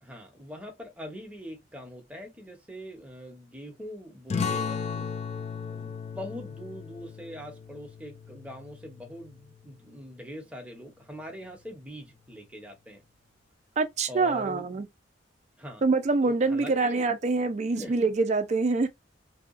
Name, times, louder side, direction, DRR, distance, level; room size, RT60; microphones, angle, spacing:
voice 1, 0.0-5.1 5.7-13.0 14.1-14.6 15.6-15.8 16.2-17.0 17.7-18.0, equal, 5° right, 0.8 m, -42 dB
sound 1, 4.3-9.5, left 6 dB, 35° left, 0.3 m, -35 dB
voice 2, 13.8-14.9 15.8-18.9, right 3 dB, 40° right, 0.4 m, -25 dB
2.7 x 2.2 x 2.5 m
head